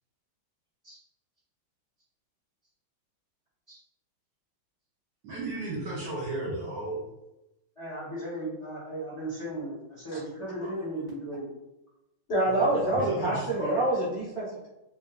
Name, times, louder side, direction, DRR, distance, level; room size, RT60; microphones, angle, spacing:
voice 1, 5.2-7.0 12.5-13.8, right 2 dB, 65° right, -5 dB, 1.1 m, -33 dB
voice 2, 7.8-11.5, right 1 dB, 25° left, -9 dB, 0.7 m, -36 dB
voice 3, 12.3-14.7, right 1 dB, 45° left, -11 dB, 1.0 m, -26 dB
3.9 x 2.3 x 2.3 m, 0.93 s
omnidirectional pair, 2.2 m